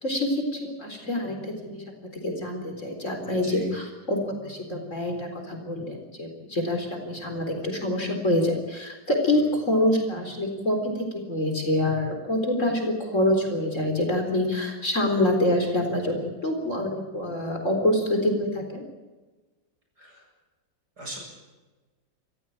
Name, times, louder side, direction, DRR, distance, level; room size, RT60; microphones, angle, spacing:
voice 1, 0.0-10.8 11.1-18.8, left 1 dB, 40° left, 3 dB, 4.4 m, -26 dB
voice 2, 3.2-3.8 9.3-9.6 20.0-20.3 21.0-21.2, right 1 dB, 55° right, 0 dB, 8.8 m, -40 dB
27.0 x 15.5 x 8.8 m, 1.2 s
omnidirectional pair, 2.1 m